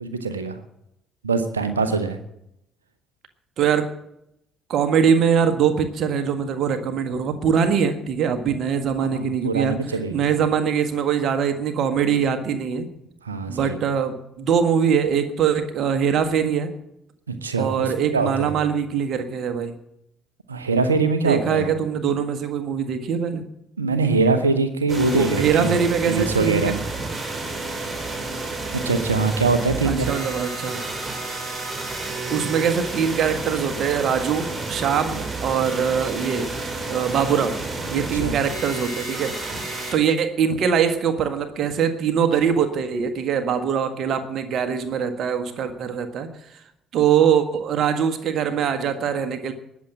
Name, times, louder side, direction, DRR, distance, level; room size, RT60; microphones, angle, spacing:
voice 1, 0.0-0.6 1.2-2.2 9.0-10.2 13.2-13.8 17.3-18.6 20.5-21.7 23.8-25.8 26.1-26.8 28.7-30.1 38.1-38.4, right 4 dB, 80° right, 9 dB, 1.0 m, -23 dB
voice 2, 3.6-3.9 4.7-9.8 10.1-12.9 13.5-16.7 17.6-19.8 21.2-23.4 25.1-26.7 29.9-30.8 32.3-36.5 36.9-37.6 37.9-46.3 46.9-49.5, right 7 dB, 55° right, 9 dB, 1.6 m, -22 dB
sound 1, 24.9-39.9, right 3 dB, 30° right, 5.2 m, -30 dB
19.5 x 7.4 x 7.6 m, 0.81 s
figure-of-eight pair, 45°, 0 cm